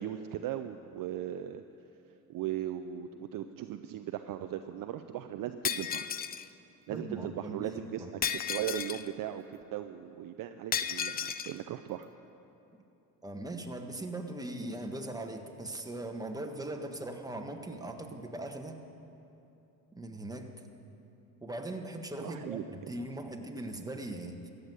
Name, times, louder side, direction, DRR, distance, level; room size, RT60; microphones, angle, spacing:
voice 1, 0.0-1.6 2.3-6.1 6.9-8.1 8.5-12.1 22.2-22.9, right 11 dB, 45° right, 9 dB, 0.6 m, -38 dB
Shatter, 5.6-6.5 8.2-9.1 10.7-11.5, left 8 dB, 20° left, 0.4 m, -33 dB
voice 2, 6.9-8.1 13.2-18.8 19.9-20.5 21.4-24.4, right 1 dB, 10° right, 3 dB, 1.5 m, -40 dB
14.0 x 8.1 x 9.4 m, 2.9 s
hypercardioid pair, 75°, 46 cm